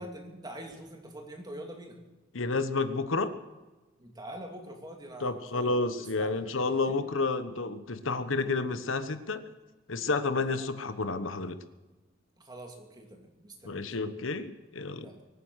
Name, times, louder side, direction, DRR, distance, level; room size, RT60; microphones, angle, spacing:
voice 1, 0.0-2.0 4.0-7.0 10.4-10.7 12.4-13.9 15.0-15.2, right 1 dB, 20° right, 2 dB, 2.7 m, -45 dB
voice 2, 2.3-3.4 5.2-9.4 9.9-11.6 13.6-15.1, left 3 dB, 75° left, 11 dB, 1.2 m, -30 dB
23.5 x 9.6 x 6.4 m, 1.2 s
head